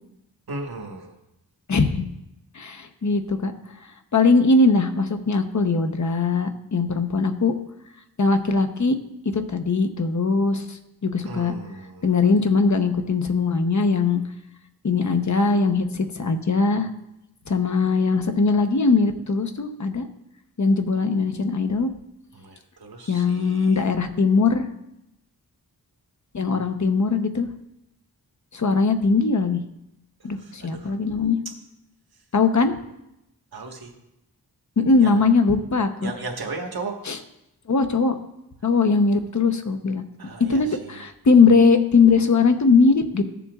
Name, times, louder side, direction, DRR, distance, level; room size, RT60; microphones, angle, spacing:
voice 1, 0.5-1.2 11.2-12.0 22.3-23.8 30.2-30.9 33.5-33.9 35.0-35.3 36.0-37.0 40.2-41.0, right 3 dB, 70° right, 1 dB, 1.5 m, -36 dB
voice 2, 1.7-2.0 2.5-3.5 4.1-7.5 8.2-9.0 9.3-11.5 12.0-14.2 14.8-16.9 17.5-20.1 20.6-21.9 23.1-24.7 26.3-27.5 28.5-29.6 30.2-31.4 32.3-32.7 34.8-36.1 37.1-37.2 37.7-38.2 38.6-40.0 40.5-43.2, left 4 dB, 50° left, 7 dB, 0.9 m, -20 dB
15.5 x 7.1 x 2.4 m, 0.86 s
wide cardioid pair, 90°, 38 cm